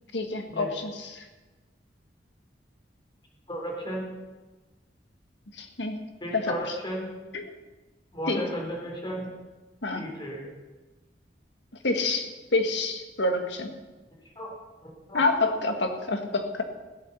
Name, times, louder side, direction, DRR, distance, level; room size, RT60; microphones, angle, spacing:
voice 1, 0.1-1.2 5.6-6.5 7.3-7.4 8.3-8.4 9.8-10.0 11.8-13.7 15.1-16.6, left 2 dB, 75° left, 5 dB, 1.6 m, -28 dB
voice 2, 3.5-4.0 6.2-7.1 8.1-9.3 9.9-10.5 14.4-14.5 14.8-15.2, equal, 25° left, -1 dB, 3.6 m, -34 dB
16.0 x 8.5 x 7.1 m, 1.2 s
head